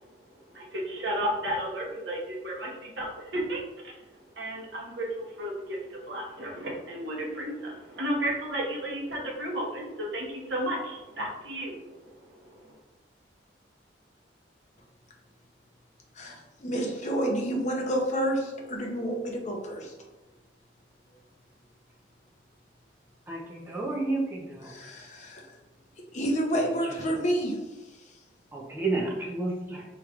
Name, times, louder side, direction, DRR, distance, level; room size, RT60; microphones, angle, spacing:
voice 1, 0.0-12.8, right 1 dB, 70° right, -2 dB, 1.0 m, -34 dB
voice 2, 16.2-19.9 23.6-23.7 24.6-25.5 26.1-27.6, right 1 dB, 40° left, 0 dB, 0.7 m, -29 dB
voice 3, 23.3-24.7 28.5-29.8, right 2 dB, 10° right, -3 dB, 0.7 m, -31 dB
4.8 x 3.1 x 2.4 m, 1.1 s
head